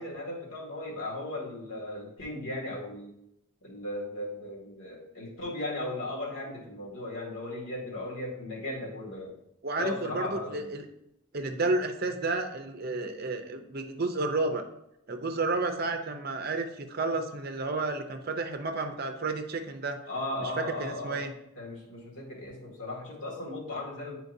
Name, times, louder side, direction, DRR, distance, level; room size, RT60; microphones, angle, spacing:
voice 1, 0.0-3.1 3.6-9.3 9.8-10.7 20.1-21.2 21.6-24.1, left 2 dB, 65° left, -3 dB, 2.1 m, -37 dB
voice 2, 9.6-10.9 11.3-14.6 15.1-20.0 20.4-20.5 20.8-21.3, right 3 dB, 45° right, 6 dB, 0.6 m, -31 dB
9.4 x 4.5 x 2.7 m, 0.80 s
head